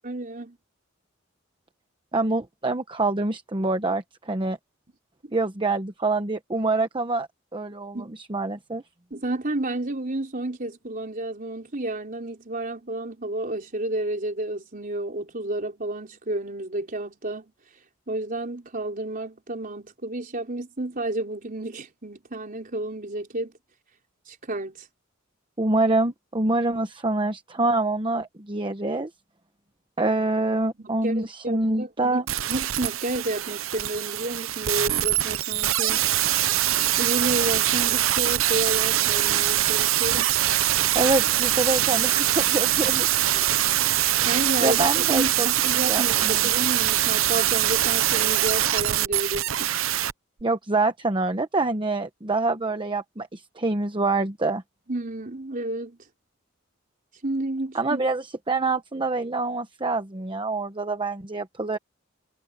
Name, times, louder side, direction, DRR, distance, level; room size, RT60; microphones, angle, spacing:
voice 1, 0.0-0.6 7.9-8.1 9.1-17.4 18.1-23.5 24.3-24.9 30.8-32.2 32.5-36.1 37.0-40.3 44.2-49.8 54.9-56.0 57.2-58.0, right 2 dB, 45° right, 4.0 m, -31 dB
voice 2, 2.1-4.6 5.3-8.8 25.6-29.1 30.0-32.2 40.9-43.1 43.3-43.7 44.6-45.5 45.9-46.4 50.4-54.6 57.7-61.8, right 2 dB, 25° right, 1.0 m, -26 dB
sound 1, 32.3-50.1 50.4-50.5, right 13 dB, 90° right, 0.7 m, -23 dB
head